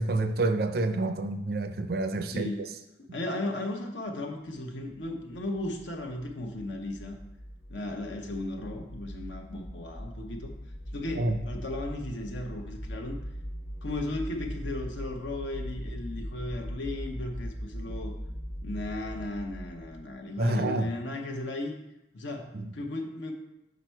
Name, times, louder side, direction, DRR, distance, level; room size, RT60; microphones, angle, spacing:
voice 1, 0.0-2.7 11.1-11.4 20.4-20.9 22.5-22.7, right 2 dB, 55° right, 8 dB, 0.4 m, -28 dB
voice 2, 2.3-2.7 3.1-7.2 7.7-10.5 10.9-13.2 13.8-18.1 18.6-21.8 22.1-23.3, left 1 dB, 75° left, 2 dB, 0.8 m, -36 dB
sound 1, 4.9-20.2, equal, 45° left, 0.9 m, -40 dB
6.0 x 5.2 x 4.5 m, 0.90 s
head